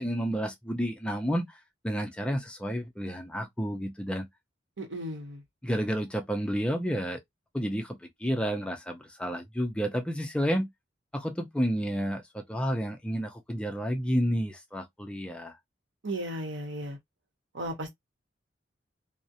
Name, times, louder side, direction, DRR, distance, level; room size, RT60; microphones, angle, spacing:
voice 1, 0.0-4.3 5.6-7.2 7.5-10.7 11.1-15.6, equal, 5° left, 0.4 m, -30 dB
voice 2, 4.8-5.4 16.0-17.0 17.5-17.9, right 1 dB, 70° right, 0.9 m, -35 dB
2.4 x 2.0 x 2.6 m
head